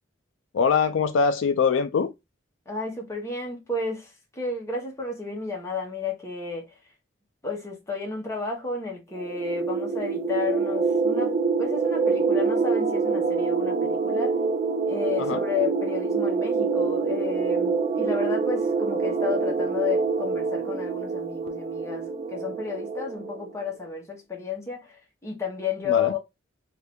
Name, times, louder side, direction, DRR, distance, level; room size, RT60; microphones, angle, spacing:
voice 1, 0.5-2.1 15.2-15.4 25.9-26.1, left 5 dB, 75° left, 0.4 m, -23 dB
voice 2, 2.7-6.8 7.4-14.3 14.9-26.2, left 5 dB, 15° left, 1.0 m, -32 dB
sound 1, 9.2-23.5, right 4 dB, 35° right, 0.3 m, -26 dB
2.6 x 2.5 x 3.4 m
head